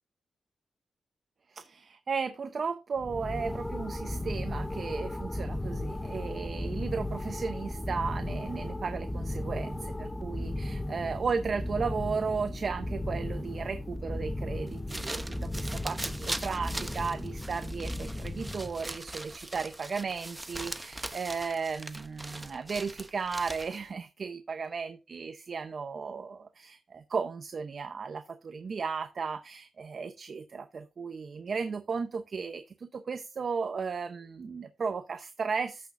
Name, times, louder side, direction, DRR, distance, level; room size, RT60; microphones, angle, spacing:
voice 1, 1.5-35.9, right 5 dB, 55° right, 0.8 m, -35 dB
sound 1, 3.0-19.0, left 1 dB, 15° left, 0.7 m, -36 dB
sound 2, 14.7-23.9, right 1 dB, 15° right, 0.7 m, -40 dB
14.0 x 6.3 x 2.6 m
cardioid pair, 85°, 0 cm